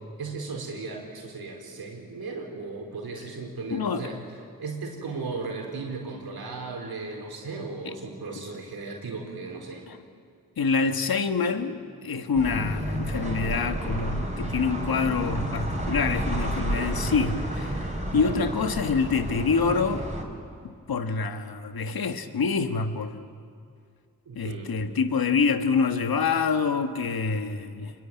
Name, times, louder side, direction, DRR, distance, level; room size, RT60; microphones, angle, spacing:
voice 1, 0.2-4.2 4.6-9.8 18.1-18.5 24.2-24.7, right 4 dB, 85° right, 1 dB, 4.6 m, -36 dB
voice 2, 3.7-4.0 7.8-7.9 9.9-10.0 10.6-17.9 18.1-20.0 20.9-23.3 24.3-27.9, left 5 dB, 75° left, 7 dB, 1.7 m, -26 dB
sound 1, 12.3-20.2, right 1 dB, 20° right, 5.5 m, -31 dB
25.0 x 22.5 x 9.1 m, 2.3 s
cardioid pair, 45°, 36 cm